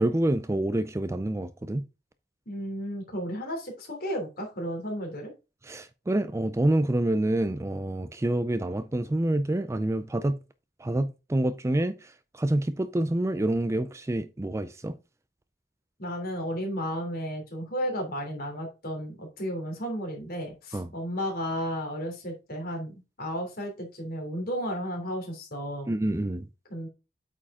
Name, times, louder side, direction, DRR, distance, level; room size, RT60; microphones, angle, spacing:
voice 1, 0.0-1.8 5.6-10.3 10.8-14.9 20.7-20.9 25.9-26.5, right 1 dB, 15° right, 0.4 m, -27 dB
voice 2, 2.5-5.3 16.0-25.9 26.7-26.9, equal, 55° left, 3.0 m, -33 dB
8.3 x 5.0 x 3.7 m
head